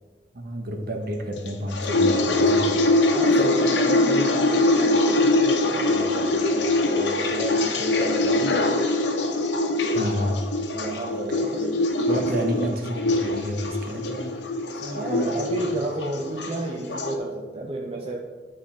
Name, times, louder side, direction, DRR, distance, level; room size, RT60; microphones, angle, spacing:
voice 1, 0.3-2.7 9.9-10.4 12.1-14.3 14.8-15.8, equal, 55° right, 3 dB, 1.1 m, -30 dB
sound 1, 1.5-17.2, left 2 dB, 70° left, 0.8 m, -23 dB
voice 2, 3.1-8.6 10.6-12.8 14.8-18.2, right 2 dB, 30° right, 0 dB, 0.5 m, -32 dB
9.7 x 4.4 x 4.3 m, 1.4 s
head